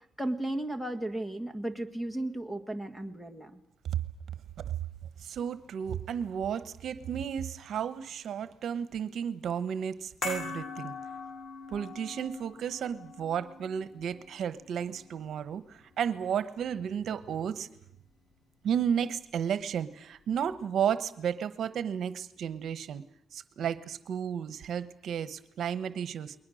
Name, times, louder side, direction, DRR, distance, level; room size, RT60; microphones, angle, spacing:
voice 1, 0.0-3.6, right 1 dB, 5° left, 8 dB, 1.7 m, -35 dB
voice 2, 5.2-10.9 11.7-17.7 18.6-23.0 23.3-26.3, right 8 dB, 70° right, 13 dB, 1.1 m, -33 dB
sound 1, 10.2-16.6 16.9-17.0, left 4 dB, 60° left, 6.7 m, -42 dB
29.5 x 21.5 x 6.4 m, 0.73 s
wide cardioid pair, 160°, 0 cm